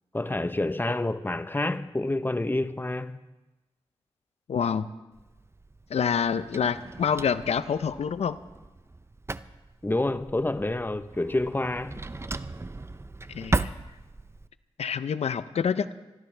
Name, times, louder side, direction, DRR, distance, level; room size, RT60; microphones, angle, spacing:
voice 1, 0.1-3.2 9.8-12.0, left 2 dB, 20° left, 0.9 m, -28 dB
voice 2, 4.5-4.9 5.9-8.4 13.3-13.7 14.8-16.0, left 7 dB, 75° left, 0.7 m, -27 dB
Drawer open or close, 5.1-14.5, right 2 dB, 25° right, 0.6 m, -36 dB
25.5 x 13.0 x 3.4 m
cardioid pair, 40°, 11 cm